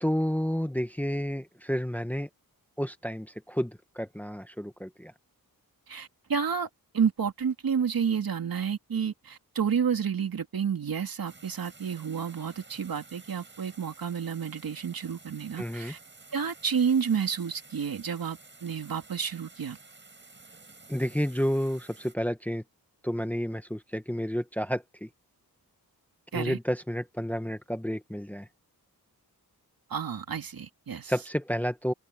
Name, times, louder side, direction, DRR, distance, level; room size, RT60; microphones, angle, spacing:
voice 1, 0.0-2.3 2.8-5.1 15.6-15.9 20.9-22.6 23.0-25.1 26.3-28.5 31.1-31.9, equal, 5° left, 1.1 m, -30 dB
voice 2, 5.9-6.7 6.9-16.0 16.3-19.8 26.3-26.6 29.9-31.1, right 7 dB, 65° right, 2.8 m, -30 dB
sound 1, 11.3-22.1, right 3 dB, 30° right, 6.1 m, -52 dB
open air
wide cardioid pair, 135°, 37 cm